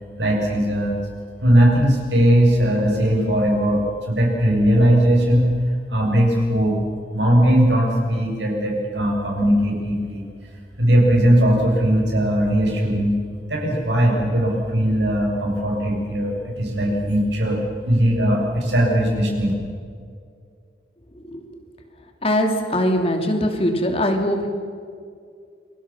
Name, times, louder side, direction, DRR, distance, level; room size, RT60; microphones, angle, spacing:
voice 1, 0.2-1.1 1.4-5.5 5.9-6.8 7.1-10.3 10.8-13.1 13.5-17.6 17.8-19.5, equal, 85° right, -1 dB, 7.4 m, -19 dB
voice 2, 22.2-24.5, equal, 35° left, 4 dB, 2.7 m, -21 dB
29.0 x 23.0 x 6.0 m, 2.3 s
head